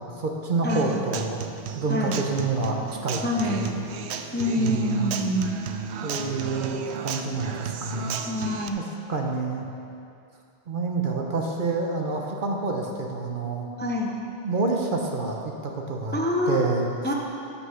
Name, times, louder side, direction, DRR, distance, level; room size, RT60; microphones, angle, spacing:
voice 1, 0.0-1.4 1.8-3.2 3.5-3.8 4.6-5.2 6.0-8.2 8.7-9.7 10.7-13.7 14.4-16.2 16.5-16.9, right 3 dB, 50° right, 1 dB, 1.0 m, -28 dB
voice 2, 0.6-1.0 1.9-2.1 3.2-3.7 4.3-5.6 8.2-8.8 13.8-14.1 16.1-16.6 17.0-17.1, left 1 dB, 15° left, -1 dB, 0.5 m, -26 dB
Human voice / Acoustic guitar, 0.7-8.7, right 6 dB, 75° right, 0.8 m, -34 dB
9.6 x 6.0 x 5.7 m, 2.6 s
omnidirectional pair, 1.2 m